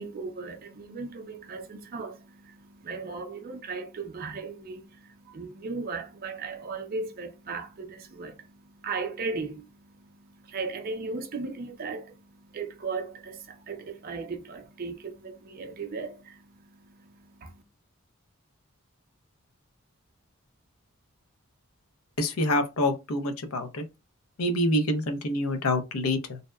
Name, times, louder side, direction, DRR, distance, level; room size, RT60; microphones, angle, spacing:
voice 1, 0.0-17.6, right 4 dB, 45° right, 0.4 m, -37 dB
voice 2, 22.2-23.8 24.4-26.4, left 1 dB, 80° left, 0.6 m, -26 dB
2.7 x 2.1 x 2.2 m
head